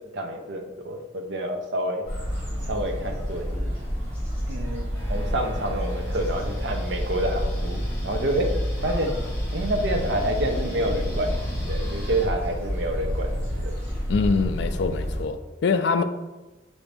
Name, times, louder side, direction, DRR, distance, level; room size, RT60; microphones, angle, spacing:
voice 1, 0.1-2.0 2.7-3.7 4.5-8.5 8.8-9.2 9.5-13.7 14.4-14.5, right 1 dB, 60° right, 0.6 m, -28 dB
sound 1, 2.0-15.2, equal, 15° right, 1.3 m, -29 dB
sound 2, 4.9-12.3, left 1 dB, 10° left, 0.8 m, -40 dB
voice 2, 14.1-16.0, left 4 dB, 60° left, 0.3 m, -24 dB
5.9 x 2.7 x 3.3 m
head